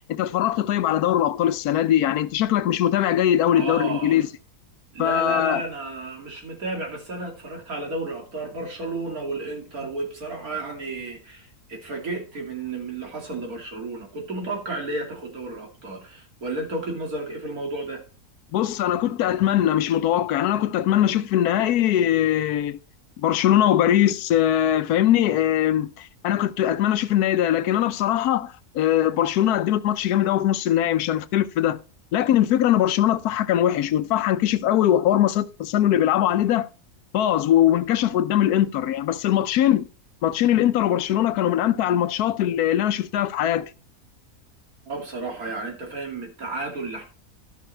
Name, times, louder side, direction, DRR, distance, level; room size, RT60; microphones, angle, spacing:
voice 1, 0.1-4.3 5.0-5.6 18.5-22.8 23.2-31.8 32.1-36.7 37.1-39.8 40.2-43.7, left 11 dB, 85° left, 1.2 m, -21 dB
voice 2, 3.5-4.2 4.9-18.0 44.9-47.0, right 2 dB, 70° right, 3.0 m, -32 dB
13.0 x 5.8 x 4.4 m
omnidirectional pair, 1.6 m